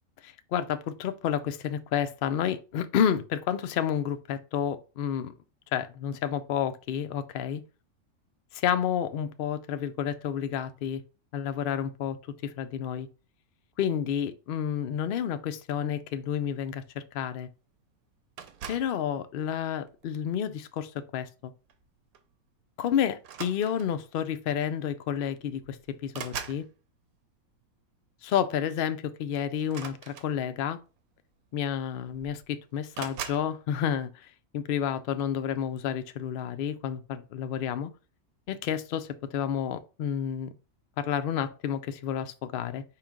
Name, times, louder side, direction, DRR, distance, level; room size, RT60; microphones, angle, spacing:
voice 1, 0.2-5.3 5.7-7.6 8.5-11.0 11.3-12.2 12.4-13.1 13.8-17.5 18.7-21.5 22.8-25.8 26.0-26.7 28.2-30.8 31.5-37.9 38.5-40.5 41.0-42.8, left 9 dB, 70° left, 0.5 m, -30 dB
sound 1, 18.4-19.0 19.9-20.2 21.7-21.9 22.1-22.3 23.2-24.1 25.1-25.2 25.5-26.7 29.6-30.7 31.6-31.7 32.0-32.5 32.9-33.5, right 8 dB, 85° right, 1.1 m, -41 dB
4.9 x 3.0 x 3.6 m
omnidirectional pair, 1.5 m